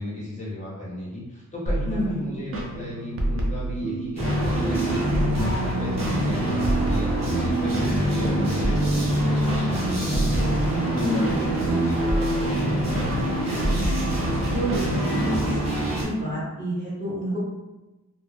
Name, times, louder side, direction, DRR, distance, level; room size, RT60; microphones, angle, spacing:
voice 1, 0.0-13.2, left 1 dB, 20° left, -7 dB, 0.5 m, -35 dB
sound 1, 1.7-15.6, right 2 dB, 45° right, 0.4 m, -30 dB
voice 2, 1.9-2.3 11.0-11.2 14.5-17.4, equal, 25° right, -7 dB, 0.8 m, -29 dB
sound 2, 4.2-16.0, equal, 80° right, 0.8 m, -25 dB
2.1 x 2.0 x 3.1 m, 1.1 s
wide cardioid pair, 155°, 32 cm